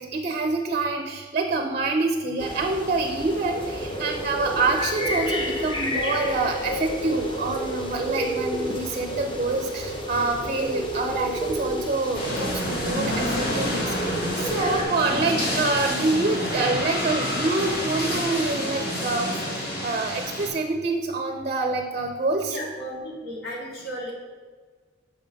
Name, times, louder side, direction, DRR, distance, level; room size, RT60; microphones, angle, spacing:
voice 1, 0.0-22.6, right 3 dB, 35° right, 4 dB, 0.4 m, -26 dB
sound 1, 2.4-14.8, equal, 25° left, 0.6 m, -30 dB
sound 2, 12.1-20.5, left 1 dB, 55° left, 1.7 m, -28 dB
voice 2, 22.4-24.1, equal, 85° left, -4 dB, 1.9 m, -35 dB
6.7 x 4.0 x 5.0 m, 1.5 s
head